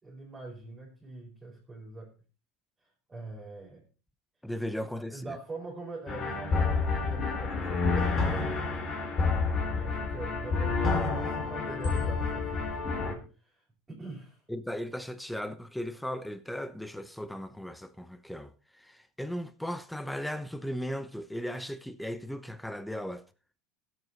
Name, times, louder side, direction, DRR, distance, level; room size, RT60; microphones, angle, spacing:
voice 1, 0.0-2.1 2.8-3.8 4.7-8.9 9.6-14.4, right 3 dB, 15° right, 4.7 m, -44 dB
voice 2, 4.4-5.4 14.5-18.5 18.8-23.2, equal, ahead, 0.9 m, -37 dB
sound 1, 6.1-13.1, left 4 dB, 30° left, 3.2 m, -29 dB
16.0 x 8.0 x 4.2 m
supercardioid pair, 135°, 0 cm